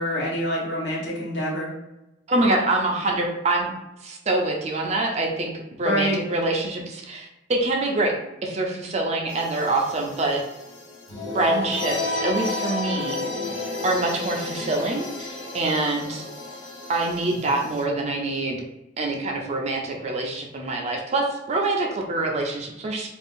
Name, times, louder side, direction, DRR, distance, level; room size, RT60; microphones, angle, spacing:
voice 1, 0.0-1.7 5.8-6.2, equal, 60° left, -5 dB, 1.1 m, -26 dB
voice 2, 2.3-3.7 4.0-8.1 8.4-10.4 11.3-13.4 13.8-16.2 16.9-18.6 19.0-23.1, right 2 dB, 35° right, 1 dB, 0.4 m, -25 dB
sound 1, 9.3-17.8, left 3 dB, 75° left, 0.7 m, -32 dB
2.5 x 2.4 x 3.5 m, 0.94 s
head